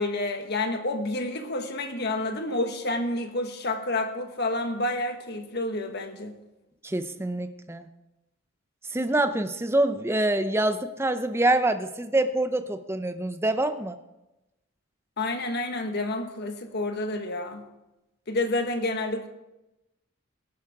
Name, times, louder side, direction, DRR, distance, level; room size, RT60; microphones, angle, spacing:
voice 1, 0.0-6.4 15.2-17.6 18.3-19.3, left 2 dB, 50° left, 6 dB, 1.4 m, -29 dB
voice 2, 6.8-7.9 8.9-14.0, right 1 dB, 10° right, 9 dB, 0.6 m, -25 dB
17.0 x 11.5 x 3.6 m, 0.95 s
head